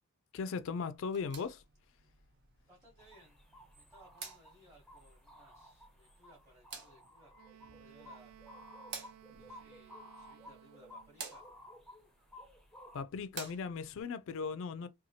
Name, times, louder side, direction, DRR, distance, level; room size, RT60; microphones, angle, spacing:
voice 1, 0.3-1.6 12.9-14.9, left 5 dB, 60° left, 0.3 m, -38 dB
sound 1, 1.0-14.0, right 5 dB, 50° right, 0.7 m, -53 dB
voice 2, 2.7-3.4 3.7-8.4 9.2-11.4, equal, 20° right, 0.9 m, -63 dB
sound 2, 3.0-13.0, left 1 dB, ahead, 0.5 m, -56 dB
Wind instrument woodwind instrument, 7.3-11.3, right 11 dB, 80° right, 0.3 m, -58 dB
2.8 x 2.3 x 2.7 m
head